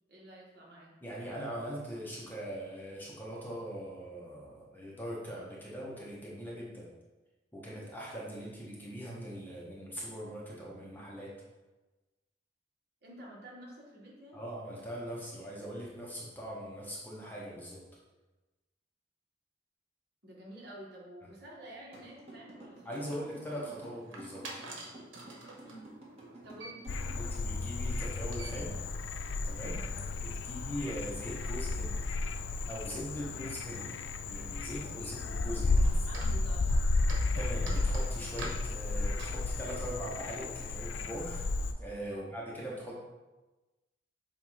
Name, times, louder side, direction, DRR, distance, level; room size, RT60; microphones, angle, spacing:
voice 1, 0.1-0.9 13.0-14.4 20.2-23.1 25.6-25.9 26.4-26.8 29.9-30.1 33.2-33.4 35.0-35.2 36.1-36.9 42.1-42.3, right 1 dB, 55° right, -4 dB, 1.8 m, -50 dB
voice 2, 1.0-6.9 7.5-11.3 14.3-17.8 22.8-24.5 27.1-28.7 29.4-29.8 30.2-32.0 32.7-34.0 34.3-36.1 37.3-41.5 41.8-43.0, equal, 10° left, -4 dB, 1.0 m, -41 dB
sound 1, 21.9-27.3, right 2 dB, 30° right, 1.6 m, -50 dB
sound 2, 22.7-40.7, right 2 dB, 85° right, 1.3 m, -50 dB
Frog, 26.9-41.7, left 3 dB, 70° left, 0.4 m, -33 dB
7.7 x 2.6 x 5.7 m, 1.1 s
head